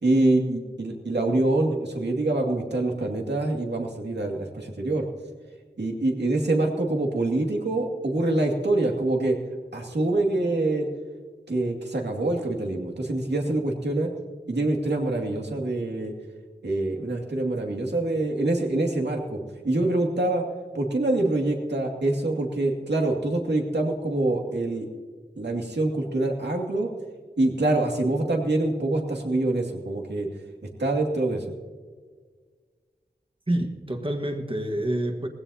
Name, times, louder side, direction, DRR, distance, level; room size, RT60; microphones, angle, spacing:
voice 1, 0.0-5.1 5.8-9.4 9.7-10.9 11.5-14.1 14.5-16.1 16.6-20.4 20.7-24.9 25.4-26.9 27.4-30.3 30.8-31.4, right 2 dB, 80° right, 0 dB, 2.3 m, -25 dB
voice 2, 33.5-35.3, right 1 dB, 30° right, 4 dB, 1.5 m, -27 dB
19.5 x 16.0 x 2.8 m, 1.6 s
wide cardioid pair, 50°, 17 cm